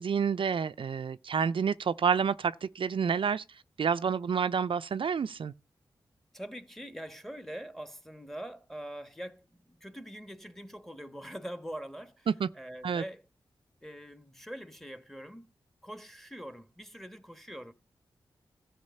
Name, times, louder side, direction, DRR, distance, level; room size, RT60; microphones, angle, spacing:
voice 1, 0.0-5.5 12.4-12.5 12.8-13.0, right 6 dB, 65° right, 0.5 m, -29 dB
voice 2, 6.3-12.3 12.5-13.2 13.8-15.5 15.8-17.7, equal, 5° left, 1.4 m, -43 dB
14.0 x 4.9 x 6.6 m
cardioid pair, 45°, 9 cm